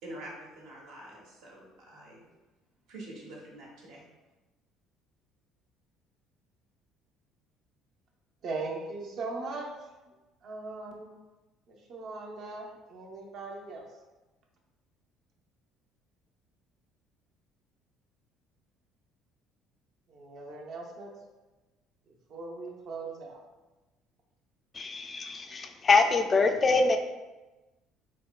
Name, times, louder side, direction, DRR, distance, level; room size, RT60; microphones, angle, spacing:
voice 1, 0.0-2.2 2.9-4.0, right 1 dB, 75° right, -3 dB, 1.0 m, -46 dB
voice 2, 8.4-10.1 10.4-11.1 11.7-13.9 20.1-21.1 22.1-23.4, right 3 dB, 60° right, 0 dB, 0.7 m, -39 dB
voice 3, 24.7-27.0, left 3 dB, 35° left, 6 dB, 0.3 m, -24 dB
4.2 x 2.1 x 2.3 m, 1.1 s
supercardioid pair, 90°, 0 cm